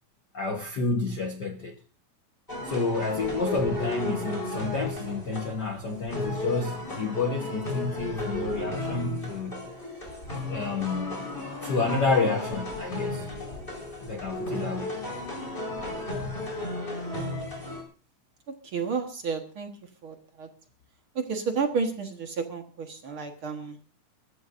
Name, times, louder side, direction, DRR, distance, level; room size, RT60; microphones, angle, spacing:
voice 1, 0.3-1.8 2.6-10.0 10.5-11.3 11.6-13.3 14.0-15.0, left 3 dB, 65° left, 5 dB, 1.0 m, -30 dB
sound 1, 2.5-17.8, left 2 dB, 15° left, 4.6 m, -34 dB
voice 2, 17.1-17.5 18.6-19.7 20.0-20.5 21.2-23.8, right 5 dB, 50° right, 5 dB, 1.9 m, -31 dB
24.0 x 14.0 x 2.6 m, 0.36 s
omnidirectional pair, 3.7 m